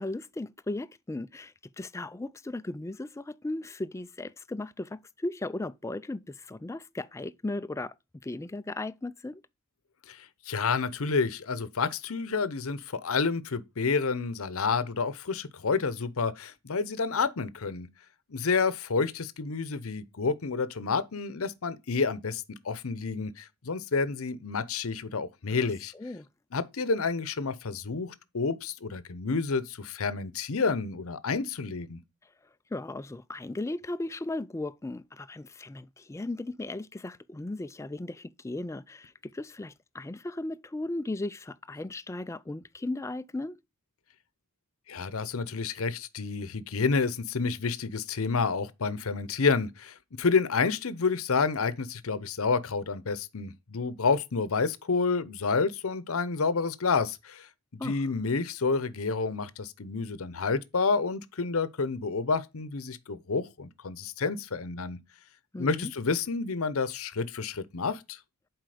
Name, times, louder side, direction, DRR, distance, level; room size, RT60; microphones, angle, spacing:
voice 1, 0.0-7.9 8.2-9.4 25.9-26.3 32.7-43.6 57.8-58.0 65.5-65.9, left 2 dB, 15° left, 0.3 m, -36 dB
voice 2, 10.1-17.9 18.3-25.9 26.5-32.0 44.9-57.5 57.8-65.0 65.6-68.2, left 4 dB, 70° left, 0.7 m, -29 dB
7.7 x 4.7 x 4.9 m
head